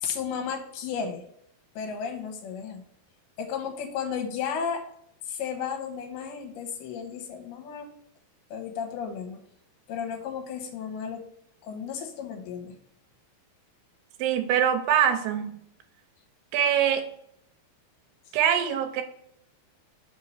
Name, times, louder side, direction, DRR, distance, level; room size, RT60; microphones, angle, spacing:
voice 1, 0.0-1.2 1.8-2.8 3.4-4.9 5.3-7.9 8.5-9.4 9.9-11.2 11.6-12.8, left 7 dB, 75° left, 2.7 m, -33 dB
voice 2, 14.2-15.6 16.5-17.1 18.3-19.0, right 9 dB, 80° right, 2.5 m, -23 dB
5.9 x 5.3 x 3.1 m
omnidirectional pair, 4.7 m